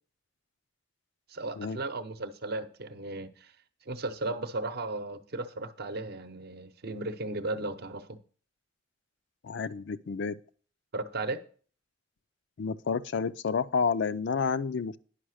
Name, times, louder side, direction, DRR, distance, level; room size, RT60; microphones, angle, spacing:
voice 1, 1.3-3.5 3.9-8.2 10.9-11.4, right 2 dB, 55° right, 0.8 m, -35 dB
voice 2, 9.4-10.4 12.6-15.0, left 5 dB, 65° left, 0.5 m, -30 dB
10.0 x 5.7 x 6.3 m
head